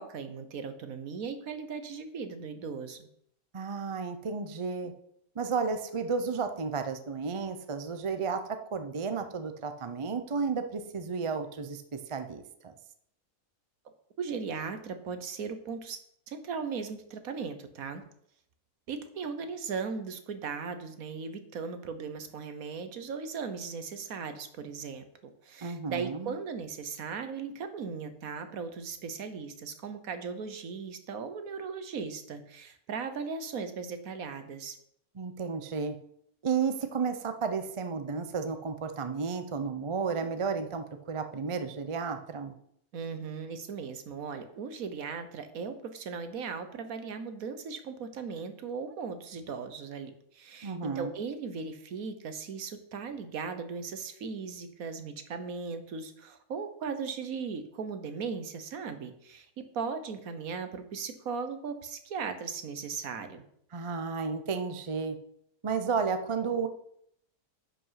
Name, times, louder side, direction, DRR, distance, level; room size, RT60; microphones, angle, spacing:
voice 1, 0.0-3.1 14.2-16.0 16.3-18.0 18.9-25.0 25.4-34.8 42.9-59.5 59.7-63.4, right 5 dB, 65° right, 9 dB, 1.4 m, -38 dB
voice 2, 3.5-4.9 5.4-11.8 12.1-12.7 25.6-26.4 35.2-36.0 36.4-42.5 50.6-51.1 63.7-65.2 65.6-66.7, right 5 dB, 35° right, 8 dB, 0.4 m, -32 dB
9.9 x 5.6 x 5.7 m, 0.70 s
omnidirectional pair, 1.7 m